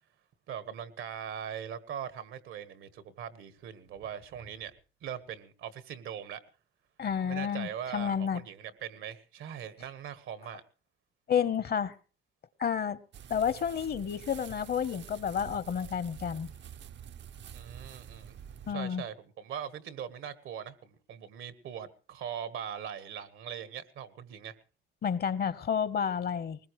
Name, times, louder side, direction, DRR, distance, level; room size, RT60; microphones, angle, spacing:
voice 1, 0.5-4.7 5.0-6.4 7.3-10.6 17.5-18.4 18.7-24.6, right 8 dB, 80° right, 13 dB, 1.5 m, -41 dB
voice 2, 7.0-8.4 11.3-12.0 12.6-13.0 13.3-16.5 18.7-19.0 25.0-26.6, left 7 dB, 50° left, 16 dB, 1.0 m, -30 dB
sound 1, 13.1-18.7, right 9 dB, 65° right, 0.7 m, -47 dB
21.0 x 19.5 x 3.1 m, 0.37 s
cardioid pair, 90°, 20 cm